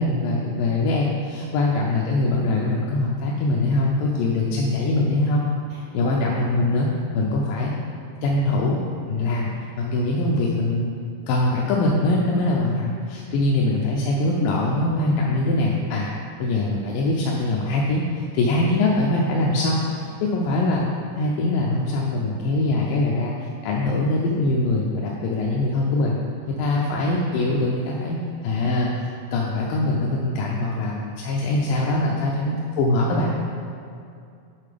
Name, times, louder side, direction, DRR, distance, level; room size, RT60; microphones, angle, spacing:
voice 1, 0.0-5.5 5.9-6.9 7.1-7.7 8.2-8.8 9.1-9.5 9.8-11.0 11.3-16.1 16.4-20.9 21.1-26.2 26.5-28.2 28.4-33.3, left 2 dB, 85° left, -3 dB, 2.2 m, -22 dB
voice 2, 13.2-13.5 26.5-26.9 32.1-32.6, right 2 dB, 80° right, -6 dB, 2.5 m, -48 dB
7.5 x 3.8 x 5.0 m, 2.4 s
omnidirectional pair, 3.9 m